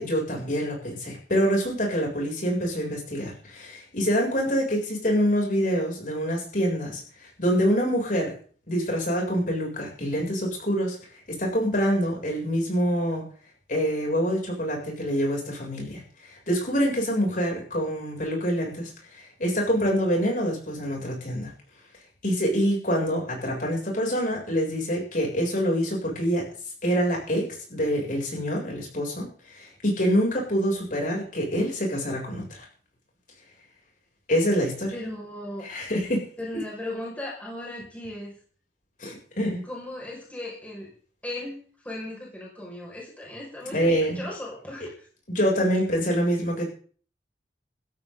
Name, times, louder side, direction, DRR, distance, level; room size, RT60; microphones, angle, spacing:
voice 1, 0.0-8.3 8.7-11.0 11.4-13.2 13.7-16.0 16.3-18.9 19.2-21.5 22.2-26.5 26.8-29.3 29.5-32.7 34.3-34.9 35.6-36.3 39.0-39.6 43.7-44.3 45.3-46.7, equal, 50° left, -1 dB, 7.5 m, -26 dB
voice 2, 34.9-35.7 36.4-38.3 39.6-40.9 41.2-45.1, left 1 dB, 10° left, -4 dB, 6.0 m, -37 dB
16.0 x 15.5 x 4.0 m, 0.43 s
head